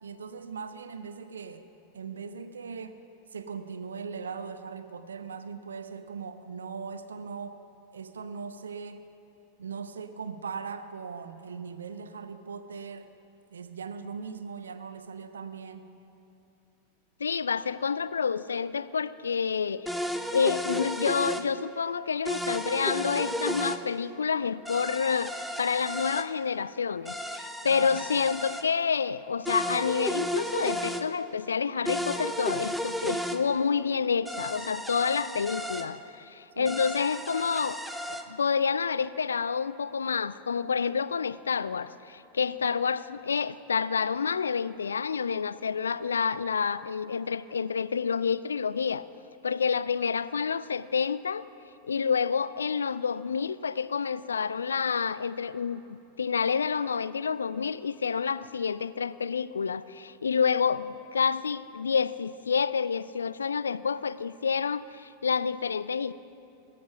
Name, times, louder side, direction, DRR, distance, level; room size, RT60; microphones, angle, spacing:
voice 1, 0.0-1.6 1.9-3.0 3.3-7.6 7.9-9.0 9.6-13.1 13.5-15.9 27.7-28.0 36.6-36.8 42.6-42.7, right 5 dB, 70° right, 10 dB, 0.7 m, -39 dB
voice 2, 17.2-19.9 20.3-37.8 38.1-49.1 49.4-51.4 51.9-66.1, left 6 dB, 70° left, 17 dB, 0.3 m, -28 dB
sound 1, 19.9-21.5 22.3-23.8 24.7-26.3 27.1-28.6 29.5-31.0 31.9-33.4 34.3-35.9 36.7-38.2, equal, ahead, 0.7 m, -33 dB
19.0 x 7.6 x 5.9 m, 2.8 s
figure-of-eight pair, 90°, 0 cm